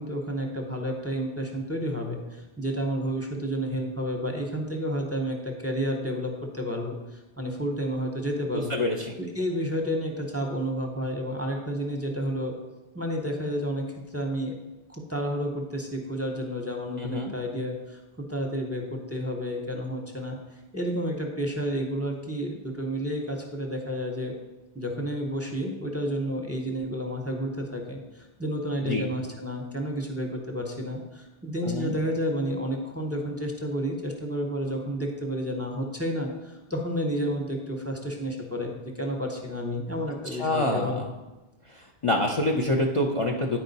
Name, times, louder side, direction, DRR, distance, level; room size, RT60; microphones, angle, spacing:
voice 1, 0.0-8.8 9.2-12.5 12.9-14.6 14.9-24.4 24.7-41.0, equal, 15° right, 1 dB, 0.7 m, -31 dB
voice 2, 8.5-9.1 17.0-17.3 28.8-29.0 31.7-31.9 40.4-41.0 42.0-43.6, left 1 dB, 40° left, 0 dB, 0.5 m, -26 dB
9.7 x 4.6 x 4.0 m, 1.1 s
omnidirectional pair, 1.0 m